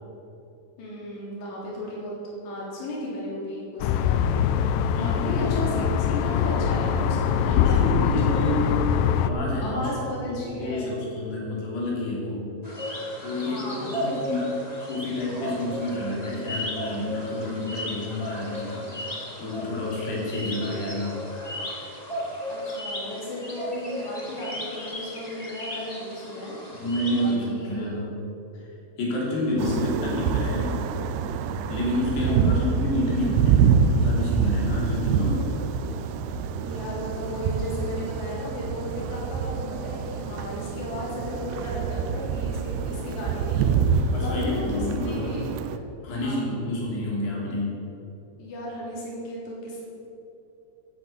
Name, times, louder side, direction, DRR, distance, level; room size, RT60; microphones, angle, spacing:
voice 1, 0.8-2.1 2.4-8.8 9.6-11.0 13.4-14.2 22.4-26.8 27.2-28.0 29.6-29.7 32.2-32.6 36.6-45.5 46.2-46.4 48.4-49.8, left 1 dB, 45° left, -5 dB, 4.5 m, -35 dB
sound 1, 3.8-9.3, left 8 dB, 90° left, 2.8 m, -23 dB
voice 2, 4.9-5.7 7.4-8.7 9.2-9.9 10.3-12.4 13.2-19.1 19.4-21.2 26.8-28.1 28.5-28.7 29.0-30.8 31.7-35.5 44.1-45.3 46.0-47.7, left 1 dB, 75° left, -4 dB, 5.2 m, -29 dB
sound 2, 12.6-27.4, equal, 20° left, 1.0 m, -35 dB
sound 3, 29.6-45.8, right 6 dB, 80° right, 2.6 m, -26 dB
13.0 x 9.2 x 7.7 m, 2.9 s
omnidirectional pair, 4.8 m